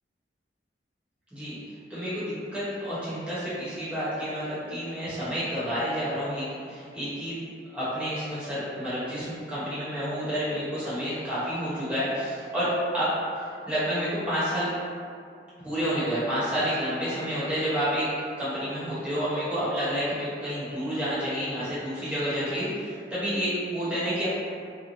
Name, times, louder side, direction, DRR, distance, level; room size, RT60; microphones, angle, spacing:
voice 1, 1.9-7.4 7.7-13.1 13.7-14.7 15.6-18.1 18.4-24.3, equal, 5° right, -12 dB, 1.0 m, -29 dB
3.1 x 2.1 x 2.6 m, 2.3 s
head